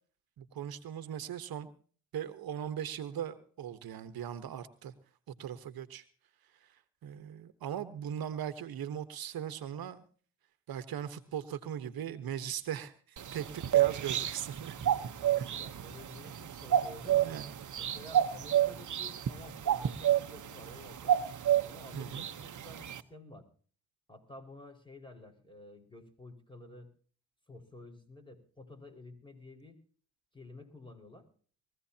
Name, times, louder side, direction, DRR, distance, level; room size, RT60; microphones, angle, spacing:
voice 1, 0.4-1.7 2.1-4.9 5.4-6.0 6.6-6.7 7.0-10.0 10.7-14.8 15.4-15.5 17.0-17.5 21.9-22.3, right 9 dB, 70° right, 12 dB, 1.2 m, -39 dB
sound 1, 13.2-23.0, right 11 dB, 55° right, 1.1 m, -31 dB
voice 2, 15.2-17.2 17.7-21.2 21.6-23.5 24.1-26.9 27.5-29.8 30.3-31.3, left 2 dB, 15° left, 4 dB, 5.1 m, -51 dB
21.5 x 15.5 x 2.8 m, 0.43 s
supercardioid pair, 50°, 37 cm